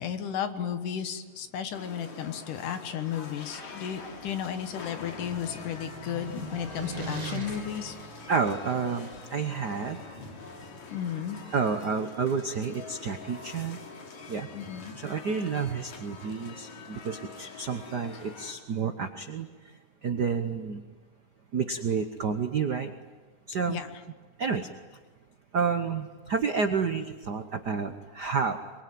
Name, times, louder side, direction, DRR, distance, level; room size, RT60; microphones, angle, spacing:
voice 1, 0.0-8.0 10.9-11.4 14.5-15.0 23.7-23.9, left 9 dB, 80° left, 9 dB, 3.0 m, -34 dB
sound 1, 1.7-18.5, left 4 dB, 65° left, 3.9 m, -45 dB
sound 2, 4.0-9.1, right 3 dB, 25° right, 0.8 m, -41 dB
voice 2, 8.3-10.0 11.5-13.8 14.3-14.5 14.9-19.5 20.0-20.8 21.5-22.9 23.5-23.8 24.4-24.7 25.5-28.6, right 5 dB, 75° right, 7 dB, 0.9 m, -30 dB
24.0 x 24.0 x 9.4 m, 1.3 s
omnidirectional pair, 3.6 m